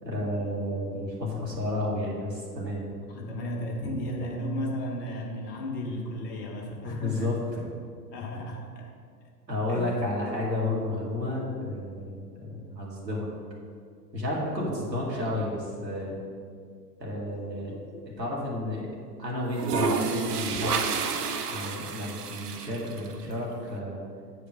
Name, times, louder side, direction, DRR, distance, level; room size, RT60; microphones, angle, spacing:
voice 1, 0.0-2.9 3.8-3.9 6.8-7.7 9.5-13.3 14.1-16.2 17.0-17.8 18.2-18.9 19.2-20.9 21.5-24.0, left 1 dB, 85° right, -4 dB, 2.2 m, -31 dB
voice 2, 3.1-7.3 8.1-8.9 9.7-9.9 15.1-15.2, left 1 dB, 15° left, -1 dB, 0.3 m, -34 dB
sound 1, 17.3-18.1 19.4-23.2, right 5 dB, 70° right, 0.8 m, -30 dB
8.1 x 4.9 x 6.0 m, 2.1 s
figure-of-eight pair, 95°, 49 cm